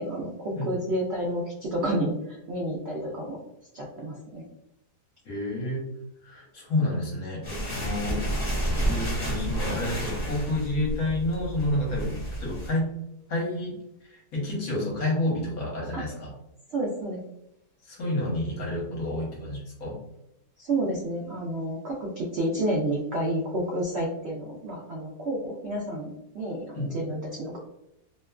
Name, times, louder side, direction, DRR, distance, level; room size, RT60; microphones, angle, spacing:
voice 1, 0.0-3.4 3.7-4.5 15.9-16.0 16.7-17.2 20.6-27.6, right 1 dB, 75° right, -3 dB, 0.6 m, -30 dB
voice 2, 5.2-5.9 6.2-8.3 8.8-12.9 13.3-13.8 14.1-16.3 17.8-20.0 26.7-26.9, left 1 dB, 60° left, -3 dB, 1.3 m, -29 dB
sound 1, 7.4-12.7, right 1 dB, 30° left, 0.9 m, -30 dB
2.9 x 2.3 x 2.2 m, 0.84 s
omnidirectional pair, 1.8 m